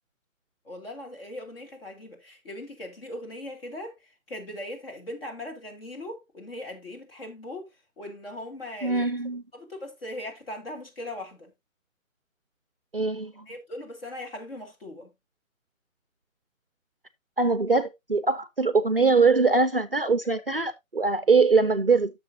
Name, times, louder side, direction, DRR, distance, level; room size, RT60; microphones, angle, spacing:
voice 1, 0.6-7.7 8.0-9.1 9.5-11.5 13.5-15.1 20.2-20.3, left 1 dB, 45° left, 2.5 m, -39 dB
voice 2, 8.8-9.4 12.9-13.5 17.4-22.1, right 4 dB, 45° right, 0.4 m, -22 dB
11.0 x 6.7 x 2.6 m
hypercardioid pair, 180°, 41 cm